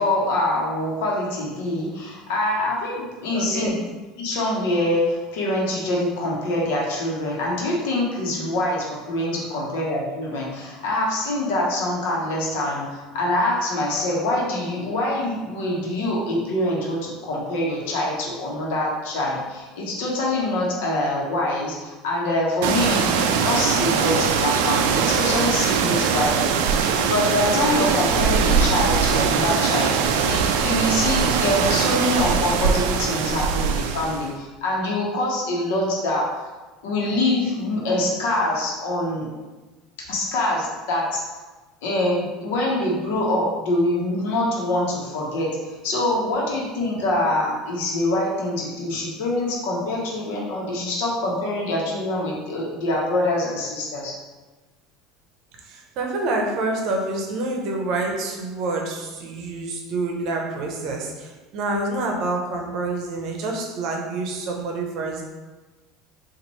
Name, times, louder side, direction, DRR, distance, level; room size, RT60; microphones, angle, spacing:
voice 1, 0.0-3.8 4.2-36.4 36.8-39.3 40.1-41.2 41.8-54.1, left 1 dB, 80° left, -3 dB, 1.1 m, -25 dB
voice 2, 3.3-3.8 55.6-65.2, right 2 dB, 55° right, 1 dB, 0.7 m, -27 dB
sound 1, 22.6-34.3, right 6 dB, 80° right, 0.3 m, -21 dB
4.1 x 2.5 x 3.0 m, 1.2 s
supercardioid pair, 135°, 0 cm